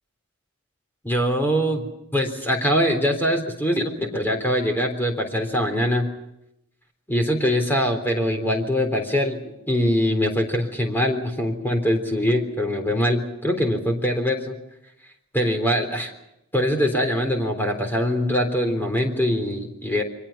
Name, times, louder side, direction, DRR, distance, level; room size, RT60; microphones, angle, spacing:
voice 1, 1.0-6.1 7.1-14.6 15.3-16.1 16.5-20.0, equal, 10° left, 5 dB, 3.7 m, -23 dB
29.5 x 23.5 x 5.8 m, 0.82 s
head